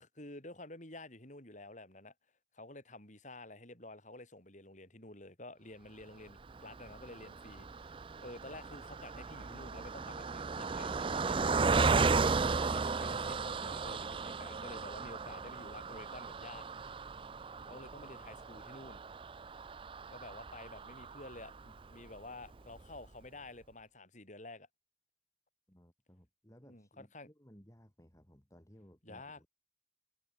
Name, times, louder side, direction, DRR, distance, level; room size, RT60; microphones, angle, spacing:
voice 1, 0.0-2.1 2.5-16.6 17.7-19.0 20.1-24.7 26.6-27.3 29.0-29.4, left 2 dB, 45° left, 6.8 m, -51 dB
Car passing by, 6.4-21.9 22.4-22.5 22.8-23.0, right 4 dB, 30° right, 0.5 m, -35 dB
voice 2, 25.7-29.5, equal, 20° left, 3.3 m, -60 dB
head